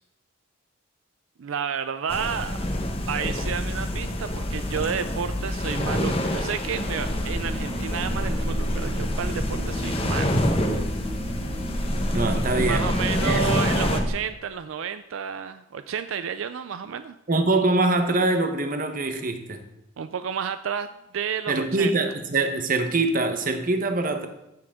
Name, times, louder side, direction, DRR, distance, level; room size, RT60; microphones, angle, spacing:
voice 1, 1.4-2.6 3.1-10.8 12.3-17.2 20.0-21.9, right 7 dB, 75° right, 11 dB, 0.4 m, -31 dB
sound 1, 2.1-14.0, left 1 dB, 30° left, 1.1 m, -27 dB
sound 2, 7.0-14.1, equal, 25° right, 1.4 m, -31 dB
voice 2, 12.1-12.9 13.2-13.5 17.3-19.6 21.5-24.3, right 2 dB, 40° right, 6 dB, 1.0 m, -24 dB
14.5 x 7.6 x 3.6 m, 0.87 s
head